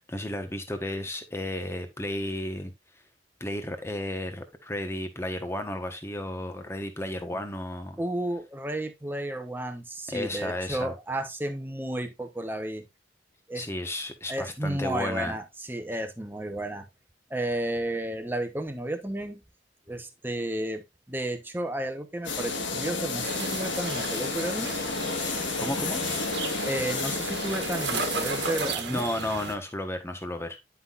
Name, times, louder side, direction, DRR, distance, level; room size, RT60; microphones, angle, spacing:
voice 1, 0.0-2.7 3.4-8.0 10.1-10.9 13.5-15.3 25.6-26.0 28.9-30.6, left 1 dB, 15° left, 1.3 m, -33 dB
voice 2, 8.0-12.9 13.5-13.7 14.3-16.8 17.3-19.4 19.9-24.7 26.6-29.0, right 1 dB, 10° right, 1.0 m, -32 dB
sound 1, 22.2-28.7, left 4 dB, 75° left, 1.6 m, -31 dB
sound 2, 23.2-29.5, right 5 dB, 60° right, 1.5 m, -35 dB
10.5 x 5.8 x 2.6 m
head